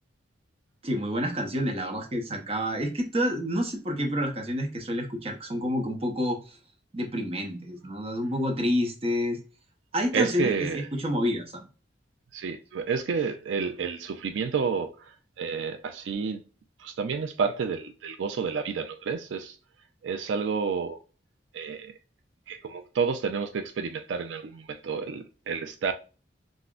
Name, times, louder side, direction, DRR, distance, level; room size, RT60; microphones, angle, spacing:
voice 1, 0.8-6.6 6.9-9.4 9.9-11.6, equal, 30° right, 0.7 m, -28 dB
voice 2, 10.1-10.9 12.3-14.9 15.4-16.4 16.8-19.5 20.0-21.0 21.5-21.9 22.5-25.9, right 5 dB, 90° right, 0.4 m, -30 dB
3.6 x 2.1 x 2.4 m
head